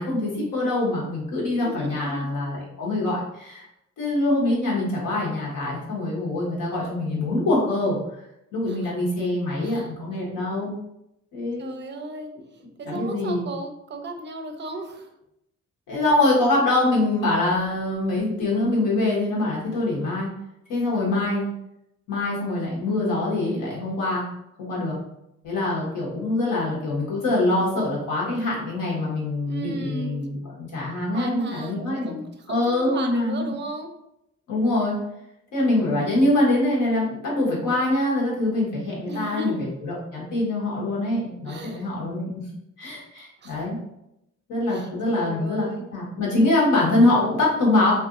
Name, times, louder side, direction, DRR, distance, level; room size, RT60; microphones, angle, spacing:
voice 1, 0.0-3.7 4.0-8.0 8.5-10.7 11.3-11.7 12.8-13.5 15.9-20.3 20.7-21.5 22.1-24.2 24.6-25.0 25.4-32.2 32.5-33.5 34.5-35.0 35.5-42.3 42.8-43.8 44.5-47.9, left 2 dB, 90° left, -4 dB, 1.1 m, -24 dB
voice 2, 1.6-2.3 8.7-8.9 9.6-9.9 11.6-12.3 12.8-15.1 29.4-30.3 31.1-32.5 32.8-33.9 39.1-39.6 41.5-41.9 43.4-43.6 44.7-45.9, right 2 dB, 40° right, 5 dB, 0.4 m, -35 dB
2.6 x 2.5 x 2.5 m, 0.83 s
cardioid pair, 90°, 30 cm